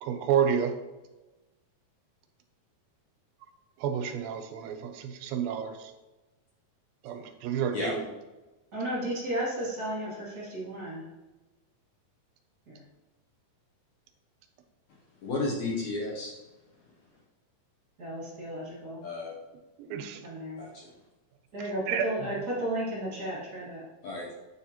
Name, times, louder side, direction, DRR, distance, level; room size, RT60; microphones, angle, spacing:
voice 1, 0.0-0.7 3.8-5.8 7.0-8.0 19.8-20.2 21.9-22.1, right 8 dB, 85° right, 6 dB, 2.4 m, -29 dB
voice 2, 8.7-11.1 12.7-12.8 18.0-19.0 20.2-20.6 21.5-23.8, right 1 dB, 40° right, -7 dB, 1.4 m, -34 dB
voice 3, 15.2-16.3 19.0-19.3 20.6-20.7 24.0-24.3, left 2 dB, 75° left, -3 dB, 1.8 m, -32 dB
8.5 x 4.4 x 2.8 m, 1.1 s
omnidirectional pair, 4.2 m